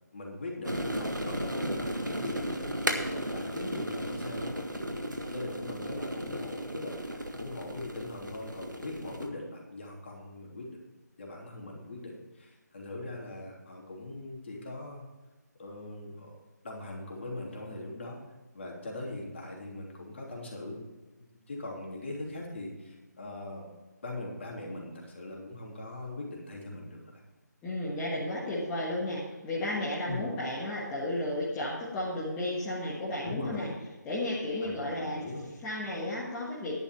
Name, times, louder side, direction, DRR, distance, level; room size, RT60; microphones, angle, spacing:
voice 1, 0.1-2.6 3.1-5.0 5.3-10.7 11.2-15.0 15.6-16.3 16.6-18.2 18.5-20.8 21.2-23.7 24.0-27.2 30.1-30.3 33.2-33.7 34.6-35.5, left 2 dB, 40° left, -1 dB, 3.1 m, -41 dB
sound 1, 0.6-9.3, equal, 85° right, 1.7 m, -35 dB
voice 2, 27.6-33.7 34.0-35.2 35.6-36.8, left 1 dB, 10° left, -8 dB, 1.6 m, -33 dB
11.0 x 9.9 x 4.6 m, 1.2 s
figure-of-eight pair, 155°, 10 cm